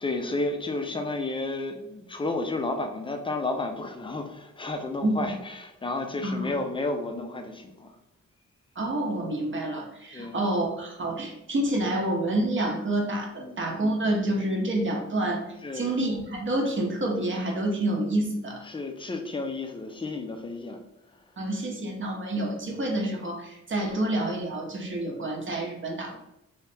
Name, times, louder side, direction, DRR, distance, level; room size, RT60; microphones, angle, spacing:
voice 1, 0.0-7.9 10.1-10.4 13.4-13.6 15.6-16.0 18.7-20.8 26.1-26.2, left 2 dB, 20° left, 5 dB, 0.4 m, -32 dB
voice 2, 6.2-6.5 8.8-18.6 21.4-26.2, right 1 dB, 45° right, 0 dB, 0.7 m, -28 dB
3.0 x 2.7 x 3.3 m, 0.85 s
wide cardioid pair, 130°, 29 cm